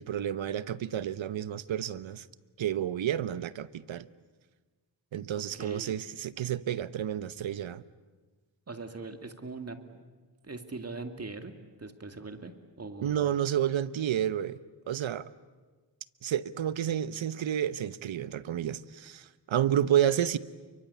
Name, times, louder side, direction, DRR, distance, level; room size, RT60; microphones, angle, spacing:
voice 1, 0.0-2.3 2.6-4.1 5.1-7.8 13.0-14.6 14.9-15.3 16.2-20.4, right 10 dB, 85° right, 1.0 m, -30 dB
voice 2, 5.3-5.9 8.7-9.8 10.4-11.5 11.8-12.5 12.8-13.3, right 3 dB, 35° right, 2.3 m, -41 dB
29.5 x 23.5 x 8.4 m
wide cardioid pair, 95°, 45 cm